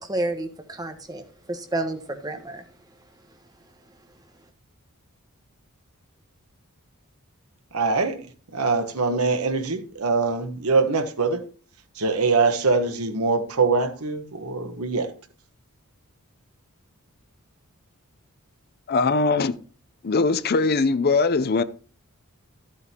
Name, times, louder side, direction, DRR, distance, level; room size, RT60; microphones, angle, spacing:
voice 1, 0.0-1.2 1.5-2.6, right 2 dB, 15° right, 1.2 m, -30 dB
voice 2, 7.7-8.3 8.5-11.4 11.9-15.1, right 4 dB, 80° right, 1.2 m, -23 dB
voice 3, 18.9-19.6 20.0-21.6, left 4 dB, 45° left, 0.5 m, -21 dB
13.0 x 8.5 x 2.9 m
head